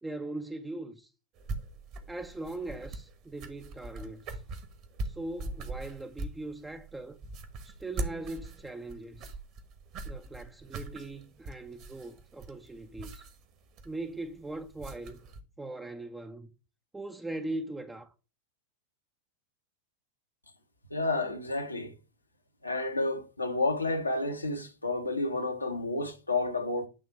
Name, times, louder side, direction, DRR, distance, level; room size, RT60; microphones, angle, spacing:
voice 1, 0.0-1.1 2.1-4.4 5.0-7.2 7.6-9.4 10.0-13.3 13.8-15.2 15.6-16.5 16.9-18.1, right 2 dB, 10° right, 0.5 m, -40 dB
sound 1, 1.4-15.4, right 2 dB, 40° right, 1.2 m, -42 dB
voice 2, 20.9-21.9 22.6-26.9, left 2 dB, 85° left, 1.0 m, -30 dB
8.7 x 3.3 x 4.7 m
figure-of-eight pair, 90°, 0 cm